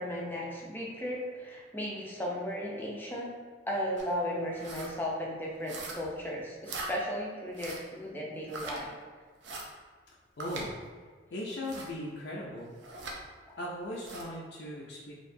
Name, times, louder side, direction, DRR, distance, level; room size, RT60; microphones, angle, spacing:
voice 1, 0.0-3.3 3.7-8.9 13.4-13.5, equal, 10° left, -3 dB, 0.6 m, -35 dB
sound 1, 4.0-4.1 4.5-4.9 5.7-6.2 6.6-6.9 7.5-7.9 8.5-8.8 9.4-9.7 10.4-10.7 11.6-11.9 12.8-13.2 13.9-14.3, right 3 dB, 85° right, 0.6 m, -41 dB
voice 2, 10.4-10.8 11.3-12.7 13.6-15.1, left 1 dB, 65° left, -5 dB, 0.5 m, -38 dB
4.5 x 2.9 x 2.7 m, 1.5 s
head